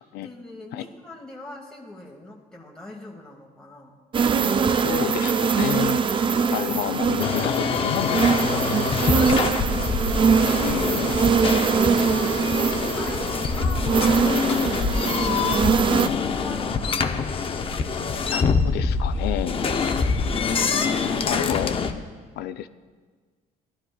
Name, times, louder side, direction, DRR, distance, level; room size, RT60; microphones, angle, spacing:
voice 1, 0.2-3.9 9.0-11.9 12.5-17.4, left 2 dB, 5° left, -3 dB, 1.2 m, -41 dB
sound 1, 4.1-16.1, right 5 dB, 30° right, 0.4 m, -22 dB
voice 2, 4.8-6.0 6.5-9.2 10.6-11.1 18.3-19.7 21.3-22.0 22.4-22.7, left 11 dB, 75° left, 12 dB, 0.5 m, -30 dB
sound 2, 7.2-21.9, left 5 dB, 35° left, 0.6 m, -25 dB
16.5 x 11.5 x 2.3 m, 1.5 s
cardioid pair, 110°, 17 cm